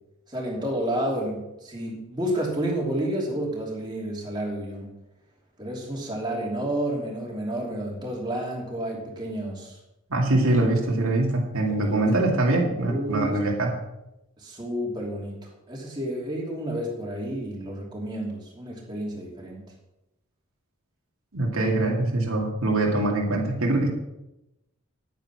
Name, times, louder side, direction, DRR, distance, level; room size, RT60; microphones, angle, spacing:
voice 1, 0.3-4.9 5.6-9.8 11.7-12.1 12.5-13.4 14.4-19.6, right 1 dB, 20° right, -3 dB, 3.0 m, -30 dB
voice 2, 10.1-13.8 21.3-23.9, right 2 dB, 80° right, 0 dB, 2.4 m, -23 dB
10.5 x 9.2 x 6.1 m, 0.91 s
head